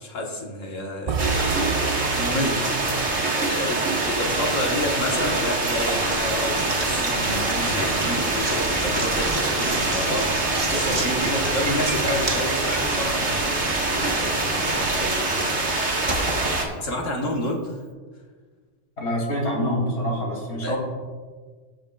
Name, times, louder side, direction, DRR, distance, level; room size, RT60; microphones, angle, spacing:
voice 1, 0.0-16.0 16.8-17.7 20.6-20.8, left 1 dB, 85° left, 0 dB, 1.8 m, -30 dB
sound 1, 1.1-5.2, right 5 dB, 70° right, 0.3 m, -31 dB
sound 2, 1.2-16.7, right 2 dB, 90° right, 2.0 m, -25 dB
Knock, 5.1-17.3, right 2 dB, 25° right, 0.9 m, -32 dB
voice 2, 19.0-20.8, equal, 60° left, -3 dB, 3.2 m, -26 dB
19.0 x 6.7 x 2.4 m, 1.5 s
omnidirectional pair, 1.3 m